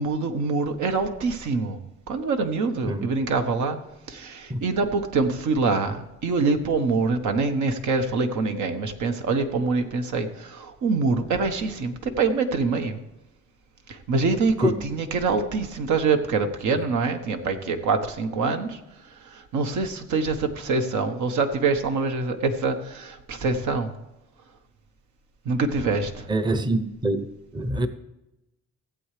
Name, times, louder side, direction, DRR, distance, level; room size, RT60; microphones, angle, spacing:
voice 1, 0.0-1.8 2.1-3.8 4.1-13.0 13.9-18.8 19.3-23.9 25.4-26.3, right 4 dB, 75° right, 7 dB, 1.2 m, -25 dB
voice 2, 26.3-27.3 27.5-27.9, right 2 dB, 15° right, 10 dB, 0.7 m, -24 dB
16.0 x 7.9 x 3.3 m, 0.96 s
cardioid pair, 90°, 30 cm